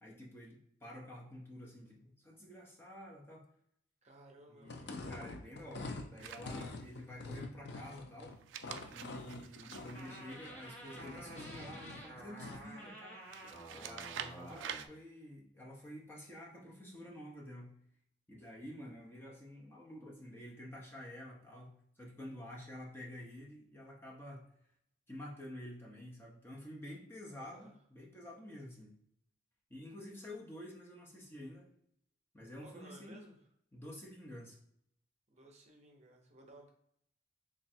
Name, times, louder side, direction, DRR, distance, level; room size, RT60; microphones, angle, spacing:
voice 1, 0.0-3.4 4.5-8.4 8.9-13.2 13.7-17.7 18.3-24.5 25.1-29.0 29.7-31.7 32.3-33.2 33.7-34.6, left 1 dB, 15° left, -3 dB, 0.7 m, -49 dB
voice 2, 4.0-5.1 27.3-27.7 32.6-33.4 35.3-36.7, right 2 dB, 35° right, 2 dB, 0.7 m, -57 dB
sound 1, 4.6-12.7, left 3 dB, 60° left, 0.5 m, -47 dB
sound 2, 6.2-7.0 8.3-10.9 13.3-14.9, right 8 dB, 85° right, 0.3 m, -47 dB
sound 3, 9.9-14.9, right 2 dB, 35° left, 1.2 m, -51 dB
3.2 x 2.4 x 4.3 m, 0.73 s
head